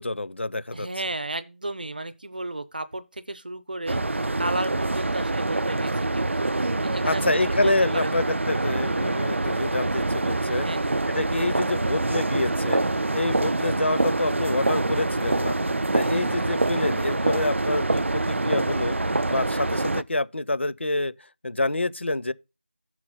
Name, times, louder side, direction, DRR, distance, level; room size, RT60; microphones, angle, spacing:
voice 1, 0.0-0.9 7.0-10.7 11.1-12.8 13.1-15.6 15.9-19.0 19.3-21.1 21.4-22.3, left 2 dB, 75° left, 0.6 m, -27 dB
voice 2, 0.7-8.1 10.5-10.9, right 2 dB, 45° right, 0.7 m, -34 dB
sound 1, 3.9-20.0, right 2 dB, 90° right, 0.4 m, -25 dB
6.1 x 4.7 x 5.5 m
figure-of-eight pair, 175°, 6 cm